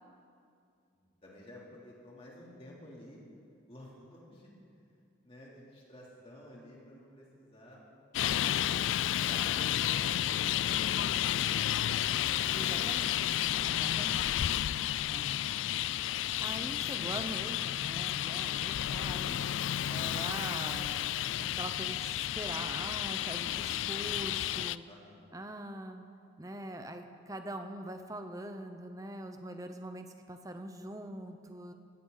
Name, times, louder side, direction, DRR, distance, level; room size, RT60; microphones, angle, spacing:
voice 1, 1.2-3.2 3.7-5.0 5.2-7.8 9.3-11.6 24.9-25.3, left 1 dB, 30° left, -5 dB, 3.3 m, -53 dB
Traffic noise roadway noise, 8.1-24.8, left 12 dB, 80° left, 0.3 m, -32 dB
voice 2, 12.5-13.4 13.7-14.5 15.0-15.3 15.7-15.8 16.4-19.4 19.9-24.9 25.3-26.0 26.4-31.7, right 1 dB, 15° right, 6 dB, 0.8 m, -43 dB
19.0 x 16.0 x 4.0 m, 2.4 s
head